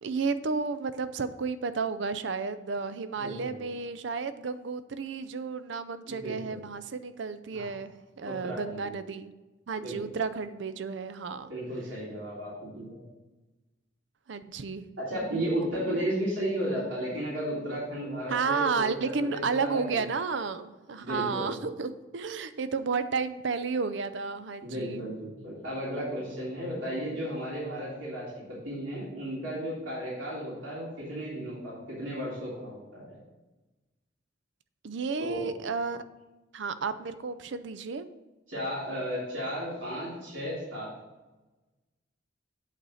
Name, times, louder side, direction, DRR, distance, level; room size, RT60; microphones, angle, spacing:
voice 1, 0.0-9.3 9.7-11.5 14.3-14.8 18.3-25.0 34.8-36.0 36.5-38.1, right 4 dB, 70° right, 12 dB, 0.5 m, -32 dB
voice 2, 3.2-3.6 6.1-6.6 7.5-7.7 8.2-8.9 9.8-10.0 11.5-13.0 15.0-20.1 21.0-21.6 24.6-33.2 35.2-35.5 38.5-40.9, equal, 90° right, -7 dB, 3.2 m, -34 dB
8.4 x 4.1 x 6.4 m, 1.1 s
head